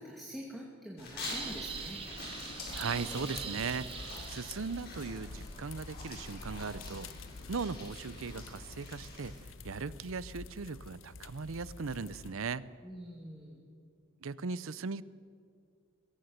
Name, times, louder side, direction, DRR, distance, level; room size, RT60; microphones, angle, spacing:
voice 1, 0.0-2.0 12.8-13.6, equal, ahead, -2 dB, 2.3 m, -45 dB
sound 1, 1.0-9.4, left 2 dB, 50° left, 7.1 m, -45 dB
sound 2, 1.2-4.9, right 6 dB, 25° right, 1.6 m, -43 dB
sound 3, 2.7-12.3, left 4 dB, 65° left, 0.8 m, -48 dB
voice 2, 2.7-3.9 4.3-7.1 7.5-9.3 9.6-12.7 14.2-15.0, right 4 dB, 70° right, 18 dB, 0.6 m, -38 dB
22.0 x 17.0 x 7.9 m, 2.2 s
head